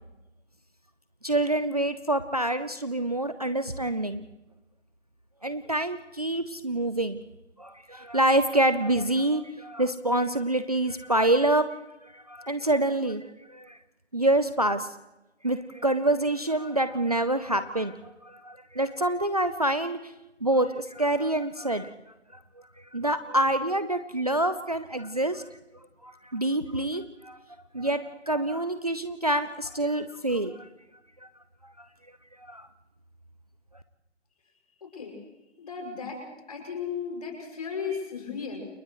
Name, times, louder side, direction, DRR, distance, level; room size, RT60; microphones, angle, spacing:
voice 1, 1.2-4.3 5.4-7.2 7.6-11.7 12.0-13.8 14.1-15.0 15.4-20.1 20.4-21.9 22.3-22.4 22.8-25.6 26.0-27.4 27.7-30.7 31.2-31.3 31.6-31.9 32.4-32.7, right 1 dB, 30° right, 12 dB, 0.6 m, -27 dB
voice 2, 35.6-36.2 36.5-38.7, left 6 dB, 30° left, 2 dB, 6.5 m, -35 dB
30.0 x 29.5 x 3.1 m, 1.0 s
hypercardioid pair, 175°, 36 cm